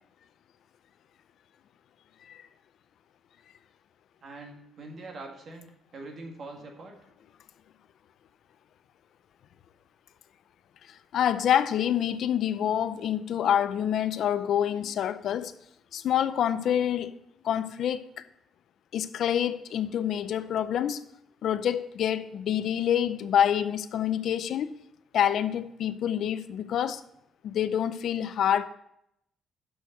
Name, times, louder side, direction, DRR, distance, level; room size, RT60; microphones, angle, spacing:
voice 1, 4.2-6.9, right 2 dB, 55° right, 1.9 m, -43 dB
voice 2, 10.9-15.5 15.9-17.1 17.4-18.1 18.9-21.0 21.4-24.7 25.1-27.0 27.4-28.6, left 9 dB, 70° left, 0.5 m, -27 dB
6.3 x 6.3 x 6.7 m
cardioid pair, 90°, 0 cm